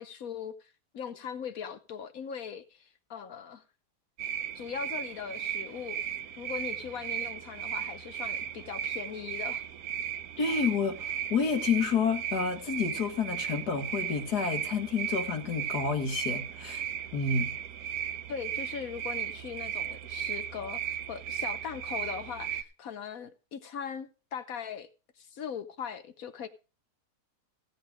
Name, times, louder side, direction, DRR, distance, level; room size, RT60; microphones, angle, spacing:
voice 1, 0.0-3.6 4.5-6.0 6.4-9.6 18.3-24.9 25.2-26.5, left 7 dB, 65° left, 1.2 m, -40 dB
sound 1, 4.2-22.6, right 9 dB, 70° right, 1.2 m, -36 dB
voice 2, 10.4-16.8 17.1-17.5, left 5 dB, 85° left, 2.2 m, -29 dB
16.0 x 7.9 x 4.9 m
omnidirectional pair, 1.7 m